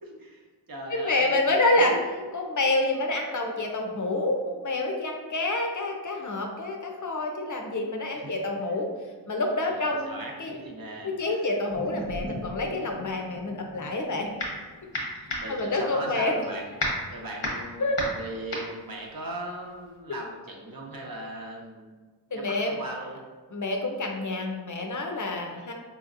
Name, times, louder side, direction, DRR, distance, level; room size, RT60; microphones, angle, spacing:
voice 1, 0.0-2.3 7.6-7.8 8.1-8.3 9.6-11.5 15.3-16.7 17.1-21.9 22.3-23.2, right 1 dB, 55° right, 0 dB, 0.7 m, -38 dB
voice 2, 0.9-1.9 2.3-8.9 9.3-10.1 10.4-10.5 11.0-14.3 15.5-16.3 17.8-18.0 22.3-22.8 23.5-25.7, left 2 dB, 45° left, 2 dB, 0.5 m, -27 dB
sound 1, 11.7-16.2 16.6-16.7, equal, 30° right, 1.0 m, -42 dB
sound 2, 13.9-14.6 14.9-19.9, left 1 dB, 85° left, 1.0 m, -32 dB
4.0 x 2.7 x 2.5 m, 1.4 s
wide cardioid pair, 50°, 42 cm